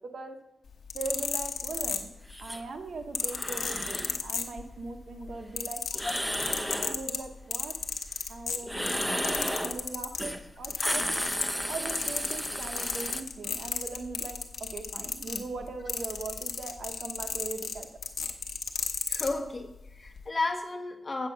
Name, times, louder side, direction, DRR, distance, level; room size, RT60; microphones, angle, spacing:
sound 1, 0.7-2.4 3.1-4.9 5.2-10.3 10.6-11.6 11.9-19.3 20.1-20.2, left 6 dB, 90° left, 0.9 m, -33 dB
voice 1, 0.9-2.1 2.4-5.8 6.8-7.7 8.3-11.0 11.7-17.9, right 3 dB, 70° right, 5 dB, 1.1 m, -40 dB
sound 2, 2.3-2.6 3.3-4.2 5.9-7.0 8.6-9.8 10.2-10.4 10.7-13.2, equal, ahead, 0.7 m, -33 dB
voice 2, 19.1-21.3, left 3 dB, 35° left, 3 dB, 1.3 m, -33 dB
8.0 x 7.6 x 6.0 m, 0.88 s
wide cardioid pair, 100°, 0 cm